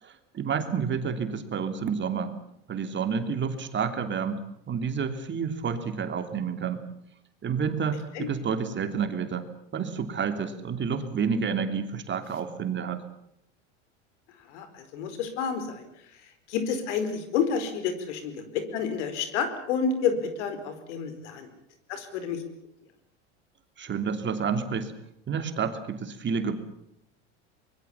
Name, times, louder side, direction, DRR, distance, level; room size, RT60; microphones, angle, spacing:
voice 1, 0.0-2.3 2.7-6.9 7.4-9.5 9.7-13.0 23.8-24.9 25.3-26.5, right 6 dB, 30° right, 8 dB, 3.1 m, -29 dB
voice 2, 14.5-15.9 16.5-21.5 21.9-22.4, left 6 dB, 75° left, 10 dB, 4.8 m, -29 dB
24.5 x 22.0 x 7.3 m, 0.76 s
hypercardioid pair, 95°, 36 cm